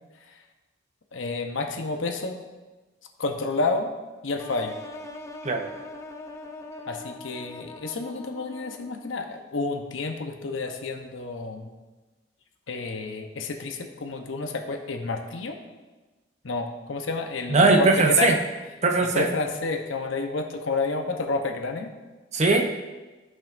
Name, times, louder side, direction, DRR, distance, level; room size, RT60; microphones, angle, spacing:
voice 1, 1.1-2.4 3.2-3.9 4.2-4.7 6.9-11.7 12.7-15.6 16.4-18.4 19.1-21.9, left 3 dB, 80° left, 4 dB, 0.9 m, -30 dB
sound 1, 4.4-9.2, left 2 dB, 15° left, 0.5 m, -41 dB
voice 2, 17.5-18.4 18.8-19.3 22.3-22.6, right 3 dB, 35° right, 3 dB, 0.7 m, -19 dB
13.5 x 5.5 x 2.6 m, 1.2 s
head